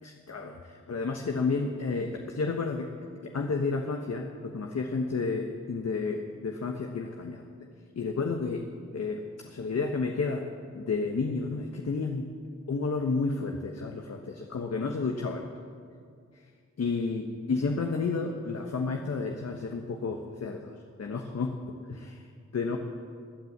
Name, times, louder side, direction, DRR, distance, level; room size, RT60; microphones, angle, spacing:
voice 1, 0.0-2.9 3.2-7.4 7.9-8.6 8.9-10.4 10.7-12.3 12.7-15.4 16.8-21.6 21.9-22.3 22.5-22.8, left 4 dB, 60° left, 3 dB, 1.2 m, -31 dB
16.0 x 9.4 x 7.3 m, 2.2 s
cardioid pair, 50°, 29 cm